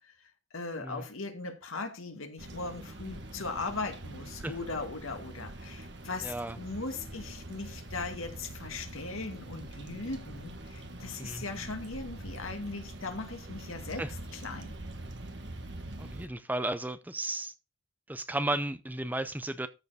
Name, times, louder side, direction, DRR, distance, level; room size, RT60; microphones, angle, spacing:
voice 1, 0.0-14.0 14.3-14.8, left 3 dB, 85° left, 2.2 m, -39 dB
sound 1, 2.4-16.3, right 1 dB, 55° right, 1.6 m, -44 dB
voice 2, 6.2-6.6 11.2-11.4 14.0-14.1 16.0-17.5 18.1-19.7, right 1 dB, 10° right, 0.6 m, -34 dB
13.5 x 4.8 x 4.9 m
head